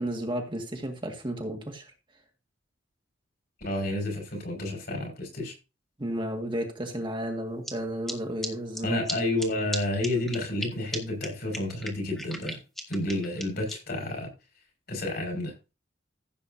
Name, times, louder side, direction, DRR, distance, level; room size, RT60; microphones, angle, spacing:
voice 1, 0.0-1.9 6.0-9.0, right 1 dB, 25° right, 2 dB, 1.9 m, -33 dB
voice 2, 3.6-5.5 8.8-12.6 12.9-14.3 14.9-15.5, left 1 dB, 55° left, 2 dB, 5.9 m, -30 dB
sound 1, 7.6-7.7 8.1-8.2 8.4-8.5 8.7-8.8 9.1-9.2 9.4-9.5 9.7-9.8 10.0-10.7 10.9-11.0 11.2-11.3 11.5-13.7, equal, ahead, 1.8 m, -34 dB
15.5 x 8.1 x 2.7 m, 0.29 s
head